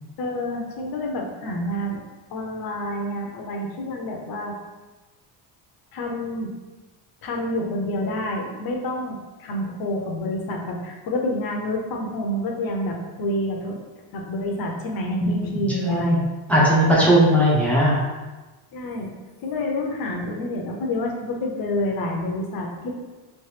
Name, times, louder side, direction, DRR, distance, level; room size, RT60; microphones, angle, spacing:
voice 1, 0.2-2.0 2.3-4.6 5.9-6.5 7.2-13.8 14.1-16.2 18.7-19.1 19.4-23.0, left 1 dB, 50° left, 1 dB, 0.7 m, -28 dB
voice 2, 15.8-16.2 16.5-18.0, equal, 5° left, -7 dB, 0.6 m, -18 dB
3.2 x 3.1 x 3.2 m, 1.2 s
cardioid pair, 165°, 46 cm